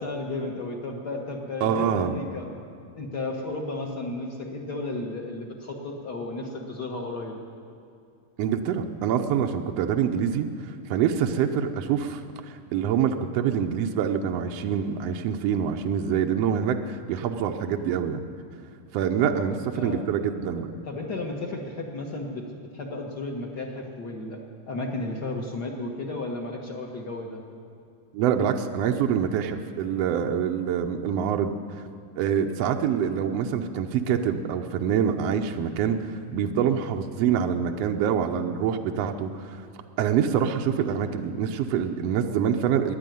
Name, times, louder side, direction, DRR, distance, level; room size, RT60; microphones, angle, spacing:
voice 1, 0.0-2.5 2.9-7.4 19.2-19.5 19.7-20.1 20.8-22.5 22.7-24.4 24.7-27.4, left 2 dB, 55° left, 1 dB, 1.1 m, -33 dB
voice 2, 1.6-2.2 8.4-18.2 18.9-20.7 28.1-31.5 32.2-39.7 40.0-43.0, right 8 dB, 85° right, 4 dB, 1.4 m, -25 dB
14.0 x 10.5 x 9.2 m, 2.4 s
omnidirectional pair, 3.7 m